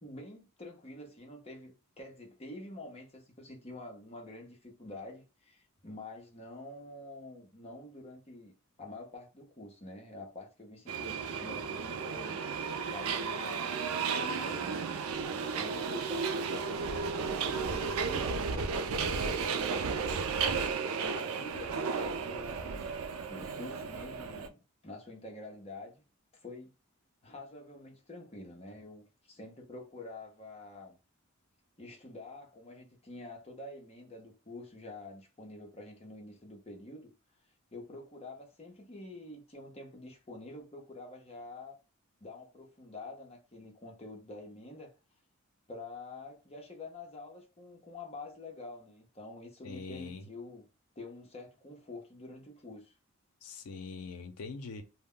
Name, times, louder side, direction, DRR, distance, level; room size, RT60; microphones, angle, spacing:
voice 1, 0.0-12.4 12.9-14.9 15.6-20.3 21.0-22.9 23.3-26.0 26.4-26.7 27.2-31.0 31.8-37.1 37.7-41.8 42.2-44.9 45.7-50.6 51.0-53.0, left 2 dB, 30° left, 0.6 m, -47 dB
Subway metro underground, 10.9-24.5, right 5 dB, 75° right, 0.4 m, -34 dB
voice 2, 49.6-50.2 53.4-54.8, left 4 dB, 85° left, 0.5 m, -42 dB
2.1 x 2.1 x 3.6 m
head